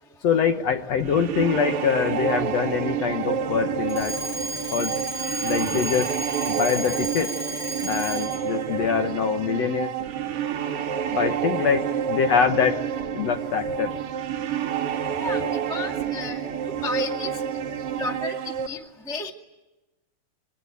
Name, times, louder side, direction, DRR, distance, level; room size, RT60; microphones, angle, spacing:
voice 1, 0.2-4.1 4.7-4.9 5.4-6.1 6.5-7.3 7.8-9.9 11.1-12.8 13.1-13.9, left 7 dB, 60° left, 6 dB, 2.0 m, -24 dB
sound 1, 1.0-18.7, right 8 dB, 65° right, 1.6 m, -29 dB
Alarm, 3.9-8.5, right 1 dB, 20° left, 2.1 m, -33 dB
voice 2, 15.2-16.4 16.8-17.3 18.0-19.3, left 3 dB, ahead, 3 dB, 1.0 m, -33 dB
27.0 x 22.5 x 9.3 m, 1.1 s
omnidirectional pair, 3.9 m